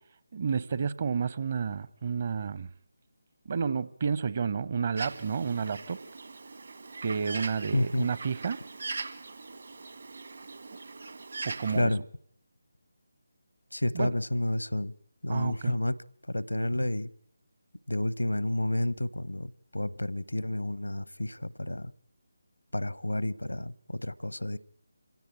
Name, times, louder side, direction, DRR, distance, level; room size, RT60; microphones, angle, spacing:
voice 1, 0.3-2.7 3.4-6.0 7.0-8.6 10.7-10.8 11.4-11.9 13.9-14.1 15.3-15.7, right 6 dB, 35° right, 16 dB, 0.9 m, -30 dB
Bird, 5.0-11.8, right 3 dB, 55° right, 1.6 m, -41 dB
voice 2, 7.7-8.1 11.7-12.0 13.7-14.9 15.2-16.0 16.3-17.1 17.9-21.9 22.7-24.6, left 1 dB, 80° left, 20 dB, 0.9 m, -30 dB
26.0 x 16.5 x 8.8 m, 0.72 s
figure-of-eight pair, 155°, 0 cm